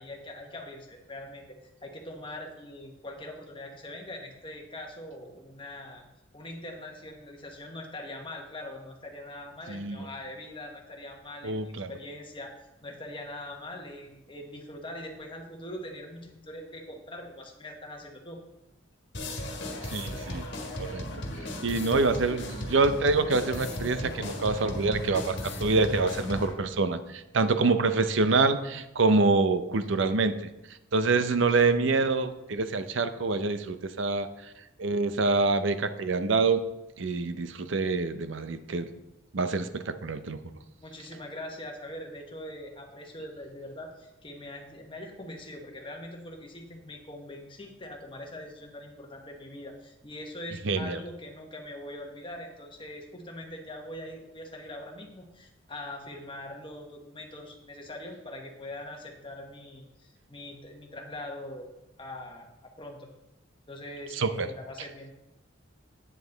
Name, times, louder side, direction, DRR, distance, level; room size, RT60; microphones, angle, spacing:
voice 1, 0.0-6.0 6.3-12.6 12.8-18.4 40.8-61.7 62.0-62.5 62.8-63.1 63.7-65.1, left 1 dB, 25° left, 2 dB, 1.3 m, -42 dB
voice 2, 9.7-10.1 11.4-11.9 19.8-20.5 20.8-21.1 21.6-30.4 30.9-34.3 34.8-36.7 37.0-38.9 39.3-40.4 50.6-51.0 64.1-64.5, right 3 dB, 65° right, 11 dB, 0.6 m, -26 dB
sound 1, 19.1-26.5, left 1 dB, 60° left, 1.6 m, -36 dB
9.1 x 8.3 x 3.9 m, 0.93 s
head